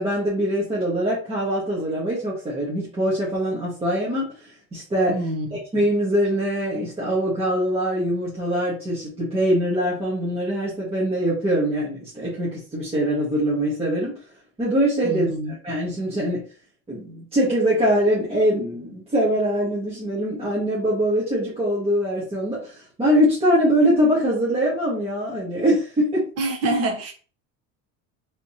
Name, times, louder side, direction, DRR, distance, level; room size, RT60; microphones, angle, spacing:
voice 1, 0.0-5.2 5.5-14.1 14.6-16.4 16.9-26.3, equal, 15° right, -7 dB, 1.2 m, -23 dB
voice 2, 5.1-5.6 15.0-15.5 26.4-27.1, right 2 dB, 40° right, 2 dB, 1.0 m, -26 dB
3.4 x 3.0 x 2.7 m, 0.37 s
cardioid pair, 155°, 37 cm